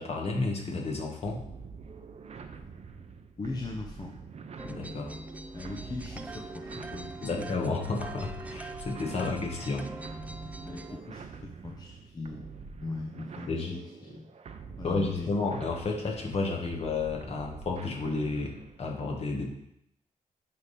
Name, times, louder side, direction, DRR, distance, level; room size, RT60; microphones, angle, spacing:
voice 1, 0.0-1.4 4.6-5.1 7.2-9.9 13.5-13.8 14.8-18.5 18.8-19.5, left 3 dB, 45° left, 0 dB, 1.5 m, -31 dB
sound 1, 1.2-18.9, right 5 dB, 45° right, 0.6 m, -46 dB
voice 2, 3.4-4.2 5.5-7.7 10.6-14.3 14.8-15.3, left 3 dB, 25° left, 0 dB, 0.7 m, -40 dB
sound 2, 4.6-11.0, right 2 dB, 10° right, 0.4 m, -43 dB
10.5 x 3.6 x 4.2 m, 0.78 s
cardioid pair, 115°, 15 cm